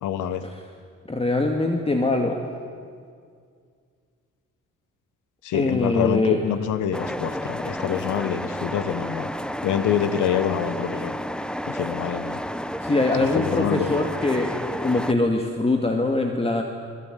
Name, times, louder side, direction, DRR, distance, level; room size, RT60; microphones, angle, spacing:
voice 1, 0.0-0.4 5.4-9.3 9.6-11.2 11.7-12.4 13.2-14.0, left 9 dB, 85° left, 13 dB, 1.5 m, -26 dB
voice 2, 1.1-2.5 5.5-6.4 12.8-14.5 14.8-16.6, left 2 dB, 20° left, 3 dB, 2.3 m, -23 dB
sound 1, 6.9-15.1, equal, 5° left, 1.0 m, -31 dB
24.0 x 21.5 x 9.4 m, 2.1 s
cardioid pair, 90°, 30 cm